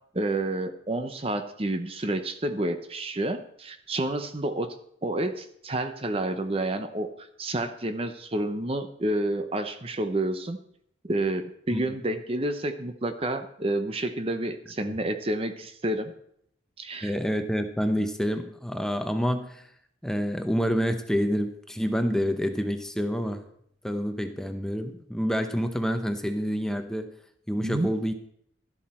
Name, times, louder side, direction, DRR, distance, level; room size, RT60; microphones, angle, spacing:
voice 1, 0.1-4.7 5.0-10.6 11.0-16.1 16.8-17.1 27.6-27.9, right 1 dB, 30° right, 8 dB, 0.8 m, -29 dB
voice 2, 17.0-19.7 20.0-23.4 23.8-27.1 27.5-28.1, equal, 5° left, 7 dB, 0.8 m, -28 dB
12.5 x 11.5 x 4.3 m, 0.69 s
head